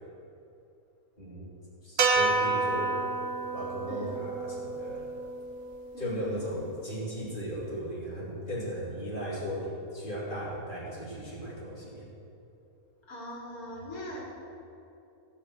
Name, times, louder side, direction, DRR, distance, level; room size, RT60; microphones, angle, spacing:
voice 1, 1.2-1.5 1.8-3.0 3.5-5.1 6.0-12.1, equal, 35° left, -6 dB, 3.1 m, -36 dB
sound 1, 2.0-6.3, right 3 dB, 85° right, 1.6 m, -30 dB
voice 2, 3.9-4.2 5.9-6.6 13.1-14.2, equal, 80° left, -4 dB, 3.2 m, -40 dB
15.5 x 5.7 x 7.7 m, 2.8 s
omnidirectional pair, 1.5 m